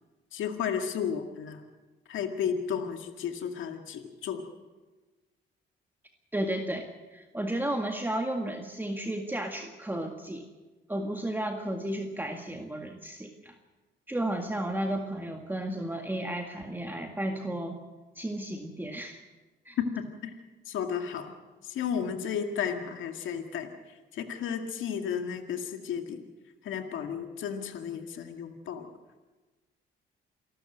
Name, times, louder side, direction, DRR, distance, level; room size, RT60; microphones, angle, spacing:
voice 1, 0.3-1.6 2.1-4.4 20.0-20.3 20.7-21.3 21.6-23.7 24.1-26.2 26.6-28.9, left 7 dB, 80° left, 5 dB, 2.1 m, -33 dB
voice 2, 6.3-10.4 10.9-13.6 14.1-17.8 18.2-19.2 19.7-19.8, right 1 dB, 10° right, 3 dB, 1.9 m, -33 dB
28.0 x 12.5 x 7.9 m, 1.2 s
cardioid pair, 90°, 20 cm